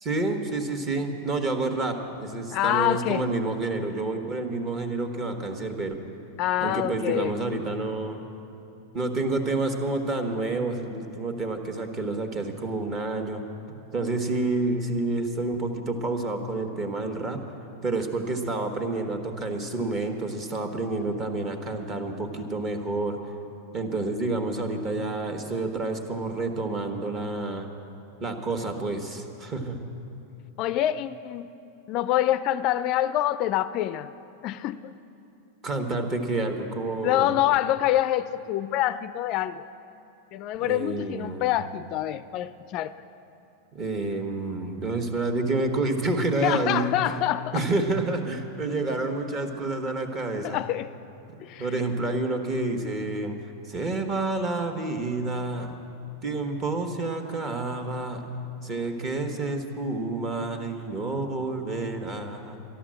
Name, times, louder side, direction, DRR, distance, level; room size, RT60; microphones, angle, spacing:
voice 1, 0.0-5.9 6.6-8.2 8.9-13.4 13.7-17.4 17.8-23.2 23.7-27.7 28.2-29.9 35.6-37.3 40.6-41.4 43.7-46.9 47.5-50.6 51.6-53.4 53.6-55.7 56.2-58.3 58.6-62.6, right 2 dB, 30° right, 5 dB, 1.4 m, -29 dB
voice 2, 2.5-3.3 6.4-7.3 30.6-31.5 31.9-34.1 34.4-34.9 37.0-39.6 40.3-42.9 46.4-47.6 50.4-50.9 51.4-51.7, left 13 dB, 45° left, 14 dB, 0.3 m, -26 dB
12.5 x 11.5 x 7.6 m, 2.8 s
supercardioid pair, 135°, 0 cm